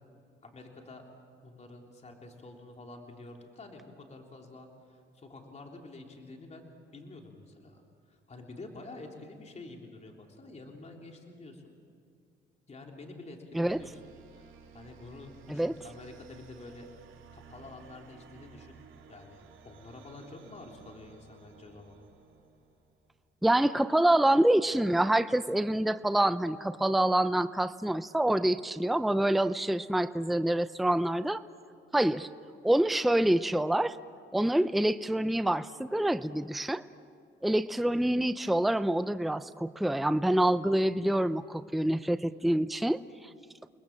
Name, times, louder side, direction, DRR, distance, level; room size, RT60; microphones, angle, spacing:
voice 1, 0.4-1.0 1.4-7.8 8.1-11.6 12.7-16.9 17.3-18.7 19.1-22.0, left 2 dB, 35° left, 1 dB, 3.5 m, -48 dB
sound 1, 13.6-23.1, right 6 dB, 80° right, 2.7 m, -55 dB
voice 2, 23.4-31.4 31.9-32.3 32.6-34.0 34.3-36.8 37.4-43.3, right 1 dB, ahead, 13 dB, 0.6 m, -26 dB
29.5 x 21.0 x 7.4 m, 2.3 s
cardioid pair, 90°, 20 cm